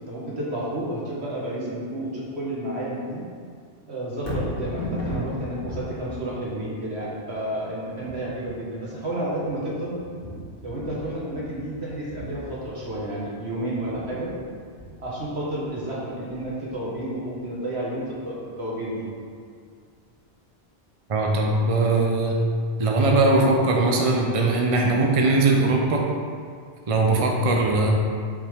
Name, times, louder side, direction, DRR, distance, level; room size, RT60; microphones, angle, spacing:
voice 1, 0.1-3.2 3.9-10.0 10.6-14.3 15.0-19.1, right 1 dB, 80° right, -6 dB, 2.0 m, -31 dB
Thunder, 4.1-18.3 18.8-18.9, left 1 dB, 60° left, 1.9 m, -38 dB
voice 2, 21.1-22.4 22.8-26.1 26.9-27.9, right 2 dB, 35° right, 0 dB, 0.8 m, -20 dB
8.7 x 5.6 x 3.6 m, 2.2 s
omnidirectional pair, 1.1 m